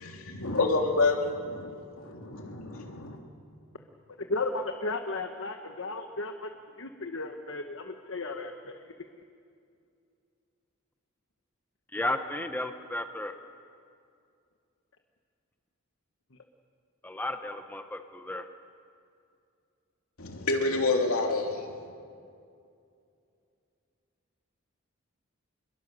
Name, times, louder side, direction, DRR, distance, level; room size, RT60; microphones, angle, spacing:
voice 1, 0.2-1.7 2.0-3.2 20.2-21.7, left 3 dB, 80° left, 2 dB, 2.8 m, -28 dB
voice 2, 4.2-6.5 6.8-8.8, left 2 dB, 65° left, 5 dB, 1.2 m, -34 dB
voice 3, 11.9-13.3 17.0-18.5, left 1 dB, 10° left, 7 dB, 0.9 m, -33 dB
26.0 x 22.0 x 6.8 m, 2.4 s
head